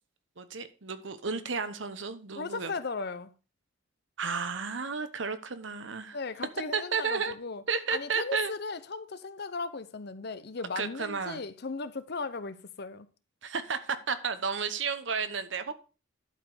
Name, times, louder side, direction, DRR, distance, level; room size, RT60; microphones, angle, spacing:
voice 1, 0.4-2.7 4.2-6.2 6.7-7.3 7.7-8.5 10.8-11.4 13.4-15.7, right 5 dB, 65° right, 1.0 m, -32 dB
voice 2, 2.3-3.3 6.1-7.6 7.9-13.1, left 4 dB, 55° left, 0.7 m, -37 dB
11.5 x 5.2 x 4.8 m
head